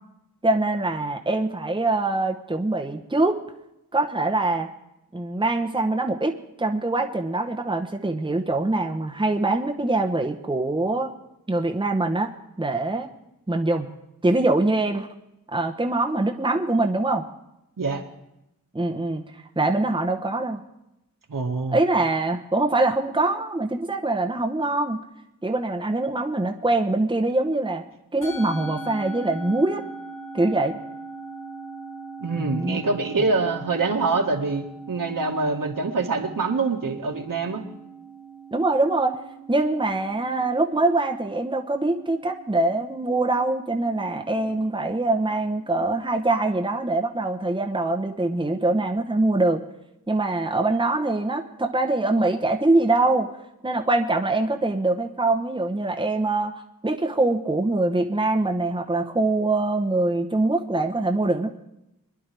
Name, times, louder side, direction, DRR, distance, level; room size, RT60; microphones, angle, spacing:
voice 1, 0.4-3.4 3.9-4.7 5.1-11.1 11.5-13.1 13.5-13.9 14.2-15.1 15.5-17.2 18.7-19.2 19.6-20.6 21.7-25.0 25.4-27.8 28.1-29.8 30.3-30.7 32.4-32.8 38.5-39.2 39.5-49.6 50.1-53.3 53.6-61.5, right 2 dB, 15° right, 3 dB, 1.0 m, -23 dB
voice 2, 21.3-21.8 32.2-37.6, right 3 dB, 65° right, 2 dB, 1.8 m, -25 dB
Musical instrument, 28.2-46.7, right 3 dB, 90° left, 4.8 m, -41 dB
24.0 x 10.5 x 3.4 m, 0.89 s
wide cardioid pair, 75°, 36 cm